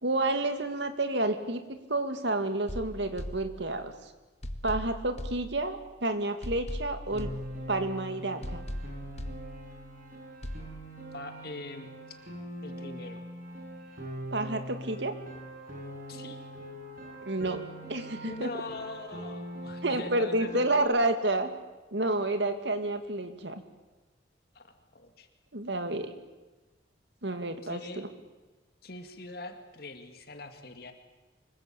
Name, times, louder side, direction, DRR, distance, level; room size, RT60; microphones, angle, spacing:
voice 1, 0.0-3.9 4.6-7.3 7.7-8.7 14.3-15.1 17.2-17.6 17.9-18.5 19.8-21.5 21.9-23.6 25.5-26.1 27.2-28.1, right 2 dB, 75° right, 8 dB, 2.5 m, -30 dB
sound 1, 2.7-4.0 4.4-6.0 6.4-8.0 8.4-10.0 10.4-10.7, equal, 35° left, 1.5 m, -40 dB
Piano, 7.1-20.8, right 1 dB, 50° right, 5.9 m, -42 dB
voice 2, 11.1-12.2 12.6-13.2 16.1-16.4 18.2-21.0 24.5-25.3 27.6-28.0 28.8-30.9, left 2 dB, 55° left, 6 dB, 2.3 m, -42 dB
25.0 x 22.5 x 8.7 m, 1.2 s
head